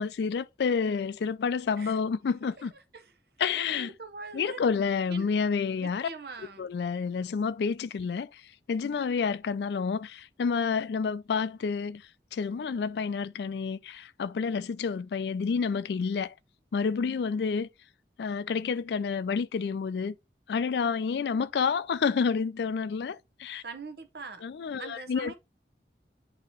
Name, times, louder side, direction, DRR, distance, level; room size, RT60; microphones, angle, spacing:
voice 1, 0.0-2.7 3.4-3.9 4.3-6.1 6.6-16.4 16.7-17.7 18.2-20.2 20.5-23.6 24.4-25.3, left 5 dB, 70° left, 0.3 m, -29 dB
voice 2, 2.4-3.1 3.5-4.6 5.1-5.3 5.8-6.7 23.6-24.4 24.8-25.3, right 4 dB, 60° right, 0.9 m, -43 dB
8.3 x 2.9 x 4.3 m
head